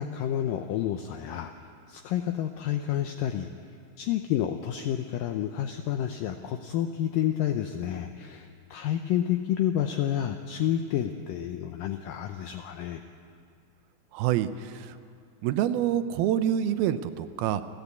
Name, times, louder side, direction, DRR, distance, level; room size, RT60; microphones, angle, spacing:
voice 1, 0.0-1.5 1.9-3.5 4.0-13.0, left 11 dB, 75° left, 6 dB, 2.1 m, -29 dB
voice 2, 14.1-14.9 15.4-17.6, right 11 dB, 80° right, 11 dB, 2.5 m, -26 dB
29.5 x 12.0 x 8.3 m, 2.5 s
omnidirectional pair, 4.5 m